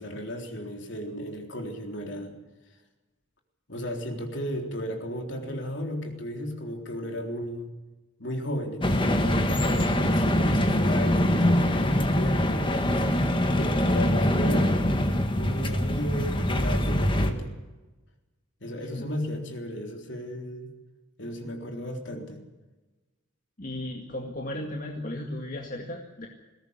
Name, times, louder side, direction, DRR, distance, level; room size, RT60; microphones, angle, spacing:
voice 1, 0.0-2.4 3.7-7.7 8.2-12.7 13.5-14.8 15.4-17.5 18.6-20.7 21.2-22.4, equal, 60° left, 3 dB, 3.8 m, -34 dB
sound 1, 8.8-17.3, left 1 dB, 25° left, 1.7 m, -24 dB
voice 2, 23.6-26.3, left 1 dB, 40° left, 1 dB, 2.1 m, -35 dB
20.5 x 17.5 x 8.1 m, 1.2 s
head